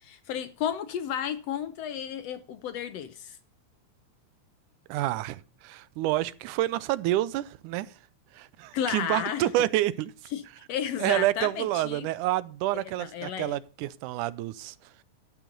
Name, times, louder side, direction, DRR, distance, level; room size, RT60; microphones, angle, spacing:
voice 1, 0.0-3.4 8.7-9.5 10.3-10.4 10.7-12.1 12.7-13.6, left 9 dB, 70° left, 1.7 m, -33 dB
voice 2, 4.9-7.9 8.3-10.1 11.0-14.8, right 15 dB, 90° right, 2.2 m, -28 dB
13.0 x 9.1 x 3.9 m
omnidirectional pair, 3.5 m